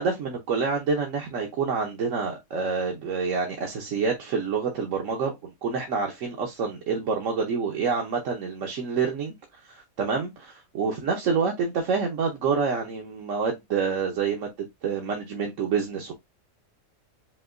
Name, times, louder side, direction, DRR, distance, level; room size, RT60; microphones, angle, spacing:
voice 1, 0.0-9.3 9.7-16.1, right 5 dB, 65° right, 1.2 m, -27 dB
5.7 x 2.7 x 2.5 m
omnidirectional pair, 1.5 m